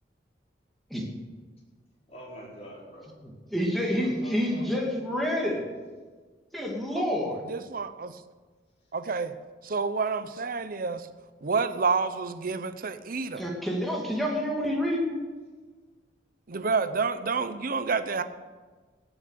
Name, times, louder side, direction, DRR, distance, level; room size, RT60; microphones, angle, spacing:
voice 1, 2.1-3.2 3.5-4.6, equal, 35° left, -5 dB, 5.0 m, -45 dB
voice 2, 3.2-5.6 6.5-7.4 13.3-15.2, equal, ahead, -2 dB, 2.7 m, -28 dB
voice 3, 7.5-8.1 8.9-9.3 9.6-11.1 11.4-13.4 16.5-18.2, right 4 dB, 55° right, 11 dB, 0.7 m, -29 dB
17.5 x 7.4 x 6.8 m, 1.4 s
head